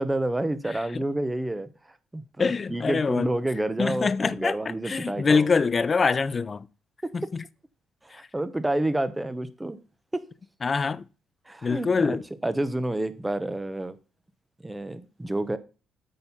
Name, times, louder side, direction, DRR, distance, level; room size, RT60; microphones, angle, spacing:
voice 1, 0.0-1.7 2.1-5.5 7.0-7.1 8.0-9.8 10.1-10.2 11.5-14.0 14.6-15.6, right 1 dB, 15° right, 0.9 m, -29 dB
voice 2, 2.4-3.3 3.8-4.6 4.8-6.7 7.1-7.4 10.6-11.0 11.6-12.2, left 5 dB, 35° left, 0.5 m, -24 dB
8.8 x 4.3 x 5.5 m
supercardioid pair, 65°, 0 cm